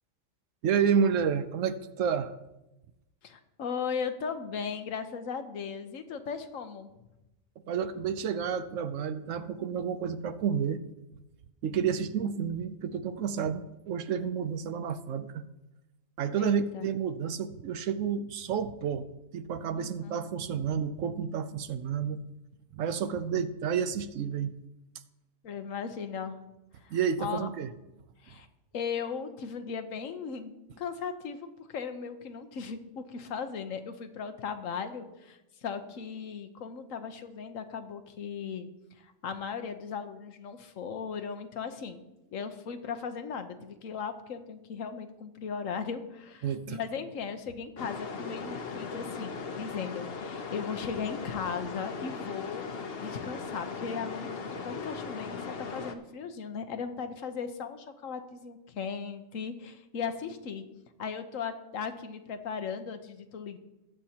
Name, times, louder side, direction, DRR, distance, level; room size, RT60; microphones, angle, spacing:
voice 1, 0.6-2.3 7.7-10.8 11.6-15.5 16.2-19.1 19.3-22.2 22.7-24.6 26.9-27.7 46.4-46.8, right 7 dB, 75° right, 12 dB, 1.0 m, -30 dB
voice 2, 3.2-6.9 16.3-16.9 19.7-20.2 25.4-26.4 26.7-27.5 28.2-28.5 28.7-38.7 38.9-42.0 42.3-52.6 53.0-60.6 61.0-63.6, left 6 dB, 85° left, 8 dB, 1.3 m, -37 dB
sound 1, 47.8-56.0, left 5 dB, 50° left, 1.0 m, -38 dB
20.0 x 7.7 x 2.9 m, 0.97 s
omnidirectional pair, 1.3 m